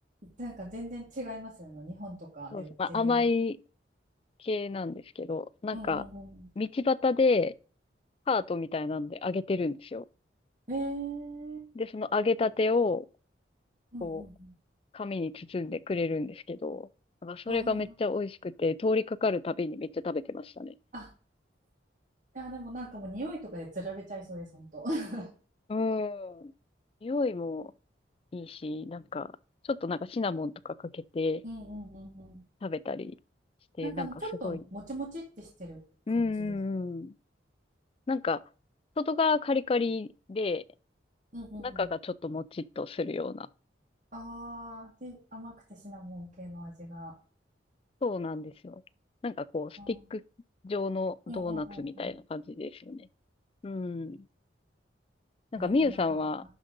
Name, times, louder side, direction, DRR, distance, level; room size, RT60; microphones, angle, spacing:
voice 1, 0.4-3.3 5.7-6.5 10.7-11.7 13.9-14.5 17.5-17.9 20.9-21.1 22.3-25.3 31.4-32.4 33.8-35.8 36.1-36.5 41.3-41.9 44.1-47.1 49.8-50.1 51.3-52.2 55.6-56.2, right 1 dB, 45° right, 2.1 m, -40 dB
voice 2, 2.5-3.6 4.4-6.0 6.6-7.5 8.3-10.0 11.7-13.0 14.0-14.2 14.9-16.9 17.2-20.7 25.7-26.5 27.0-27.7 28.3-29.3 29.7-31.4 32.6-33.1 33.8-34.1 34.4-34.6 36.1-37.1 38.1-38.4 39.0-40.6 41.6-43.5 48.0-48.8 49.2-50.2 50.6-53.1 53.6-54.2 55.5-56.4, left 3 dB, 30° left, 0.3 m, -30 dB
11.0 x 3.8 x 5.3 m
head